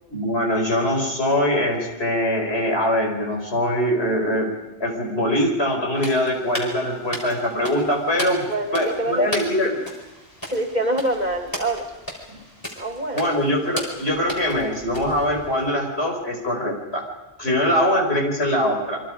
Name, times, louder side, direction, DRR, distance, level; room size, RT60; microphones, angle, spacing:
voice 1, 0.1-4.5 4.8-8.4 8.7-9.8 13.1-17.0 17.4-19.0, left 1 dB, 75° left, 0 dB, 5.4 m, -22 dB
sound 1, 5.9-15.7, equal, 20° left, 4.9 m, -36 dB
voice 2, 8.5-9.3 10.5-11.9 12.8-13.3 17.7-17.9, right 1 dB, 40° right, 4 dB, 2.5 m, -25 dB
28.5 x 24.5 x 5.1 m, 1.1 s
omnidirectional pair, 1.1 m